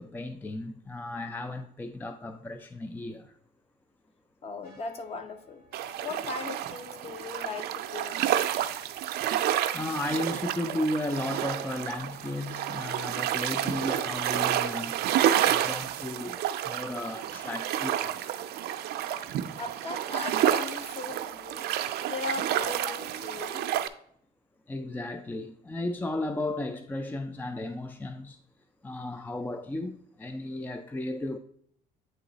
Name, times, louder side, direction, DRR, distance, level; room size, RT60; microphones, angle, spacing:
voice 1, 0.0-3.3 9.6-15.0 15.4-18.4 22.9-23.0 24.7-28.4 28.8-31.4, left 1 dB, 10° left, 0.4 m, -34 dB
voice 2, 4.4-5.6 6.0-8.2 19.6-21.7 22.1-23.7, left 4 dB, 35° left, 0.8 m, -38 dB
sound 1, 4.6-23.5, left 2 dB, 60° left, 1.4 m, -56 dB
sound 2, 5.7-23.9, right 11 dB, 70° right, 0.5 m, -30 dB
8.7 x 3.1 x 3.9 m
cardioid pair, 110°, 17 cm